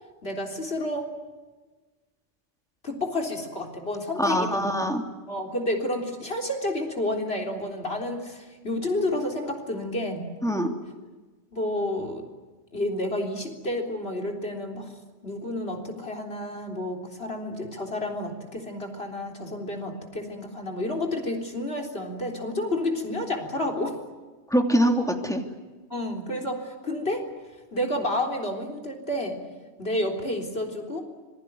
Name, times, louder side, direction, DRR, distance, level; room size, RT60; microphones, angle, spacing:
voice 1, 0.2-1.1 2.8-4.7 5.3-10.3 11.5-12.3 12.7-14.9 15.2-24.0 25.9-27.2 27.7-29.4 29.8-31.0, left 1 dB, 60° left, 2 dB, 4.0 m, -30 dB
voice 2, 4.2-5.0 10.4-10.7 24.5-25.4, equal, 5° left, 3 dB, 3.0 m, -23 dB
26.5 x 21.5 x 9.6 m, 1.3 s
omnidirectional pair, 1.2 m